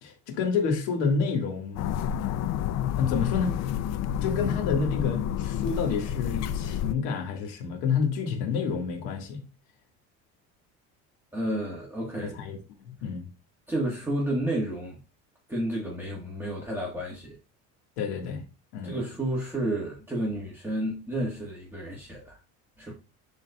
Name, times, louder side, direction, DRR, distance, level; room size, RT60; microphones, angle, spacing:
voice 1, 0.0-2.1 3.0-3.6 4.2-9.4 12.2-12.6 12.8-13.2 18.0-18.4 18.7-18.9, left 5 dB, 90° left, 1.6 m, -29 dB
sound 1, 1.8-6.9, left 10 dB, 55° left, 0.5 m, -29 dB
voice 2, 11.3-12.3 13.7-15.0 15.5-17.4 18.8-22.4 22.8-22.9, right 1 dB, 5° right, 1.4 m, -31 dB
11.0 x 4.0 x 2.3 m
cardioid pair, 120°, 32 cm